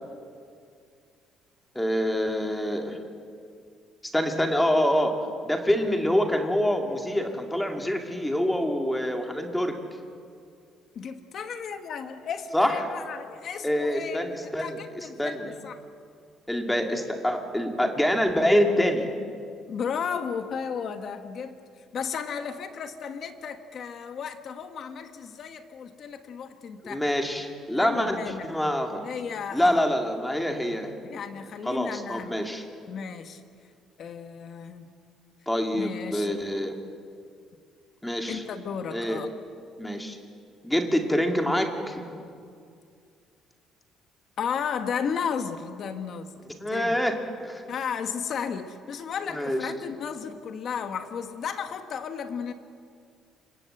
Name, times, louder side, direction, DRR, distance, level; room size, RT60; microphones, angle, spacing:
voice 1, 1.7-3.0 4.1-5.2 5.4-9.7 12.5-12.9 13.6-15.5 16.5-19.1 26.8-29.0 29.5-30.9 31.6-32.6 35.5-36.7 38.0-38.4 38.9-39.2 39.8-40.2 40.6-42.0 46.6-47.1 47.4-47.6 49.3-49.6, equal, 5° left, 3 dB, 2.2 m, -26 dB
voice 2, 10.9-15.7 19.7-21.6 21.9-27.0 27.8-28.5 28.9-29.9 31.0-32.4 32.9-33.4 34.0-34.9 35.7-36.5 38.3-39.3 44.4-46.3 46.7-47.0 47.7-52.5, left 6 dB, 40° left, 8 dB, 1.4 m, -34 dB
28.5 x 27.0 x 7.9 m, 2.3 s
cardioid pair, 175°, 0 cm